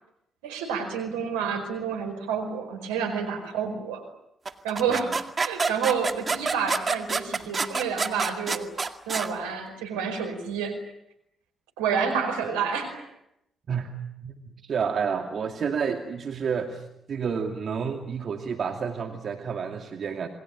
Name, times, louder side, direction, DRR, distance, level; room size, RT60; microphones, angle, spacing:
voice 1, 0.4-4.0 4.6-8.7 9.1-10.8 11.8-13.0, right 6 dB, 90° right, 5 dB, 4.8 m, -29 dB
sound 1, 4.5-9.3, right 4 dB, 40° right, 2.0 m, -28 dB
voice 2, 14.2-16.8 17.1-20.3, right 6 dB, 60° right, 4 dB, 2.5 m, -30 dB
28.0 x 21.0 x 8.9 m, 0.80 s
hypercardioid pair, 45°, 0 cm